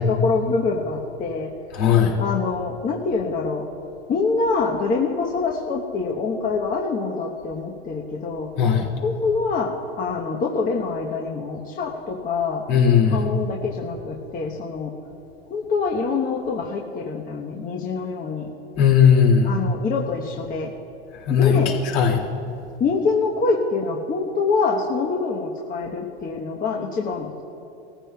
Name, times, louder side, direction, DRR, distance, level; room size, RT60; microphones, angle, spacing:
voice 1, 0.0-1.5 2.2-3.7 4.1-8.5 9.0-12.6 13.1-14.9 15.5-18.5 19.4-20.7 21.3-21.7 22.8-27.4, left 4 dB, 25° left, -1 dB, 1.1 m, -25 dB
voice 2, 1.7-2.1 8.6-8.9 12.7-13.2 18.8-19.5 21.3-21.6 21.9-22.2, left 7 dB, 55° left, -1 dB, 2.4 m, -17 dB
19.5 x 14.5 x 2.3 m, 2.8 s
hypercardioid pair, 105°, 34 cm